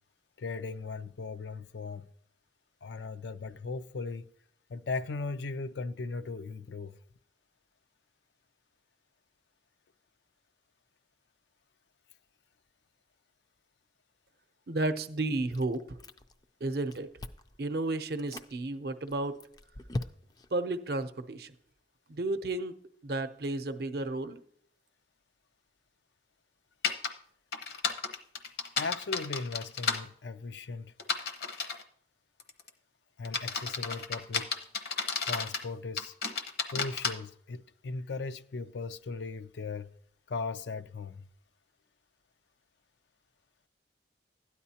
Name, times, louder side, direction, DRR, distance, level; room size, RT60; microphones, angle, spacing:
voice 1, 0.4-2.1 2.8-4.3 4.7-7.0 28.8-30.9 33.2-34.5 35.2-36.1 36.7-39.9 40.3-41.2, left 3 dB, 80° left, 0.5 m, -38 dB
voice 2, 14.7-16.0 16.6-17.1 17.6-19.4 20.5-21.5 22.1-22.8 23.0-24.4, right 2 dB, 60° right, 0.6 m, -32 dB
Chewing mastication, 15.5-16.4 16.7-17.6 18.1-18.5 19.1-20.5, left 2 dB, 20° left, 0.4 m, -40 dB
sound 1, 26.8-27.1 27.5-30.0 31.0-31.8 32.4-32.7 33.2-35.7 36.0-37.1, left 5 dB, 60° left, 0.8 m, -32 dB
13.0 x 9.8 x 2.8 m
head